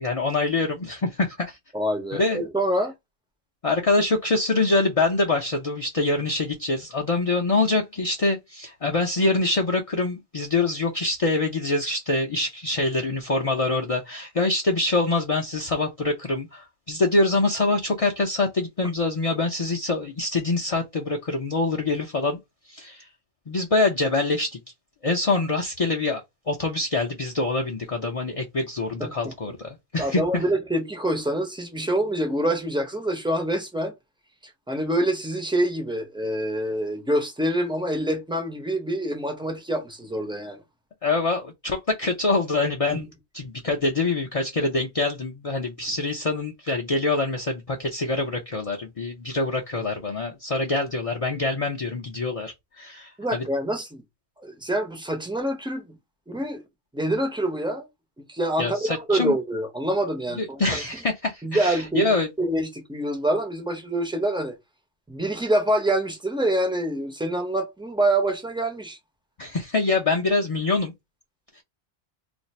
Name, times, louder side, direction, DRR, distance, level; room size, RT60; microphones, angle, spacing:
voice 1, 0.0-1.6 2.1-2.4 3.6-22.4 22.7-23.1 23.5-24.6 25.0-26.2 26.5-30.4 41.0-43.1 43.3-53.5 58.6-59.3 60.3-62.3 69.4-70.9, left 3 dB, 40° left, 0.6 m, -25 dB
voice 2, 1.7-2.9 29.0-29.3 30.0-33.9 34.7-40.6 53.2-54.0 54.4-56.0 56.3-56.6 56.9-57.9 58.3-60.8 61.4-64.5 65.1-69.0, right 1 dB, 5° right, 0.6 m, -26 dB
2.5 x 2.4 x 4.1 m
omnidirectional pair, 1.1 m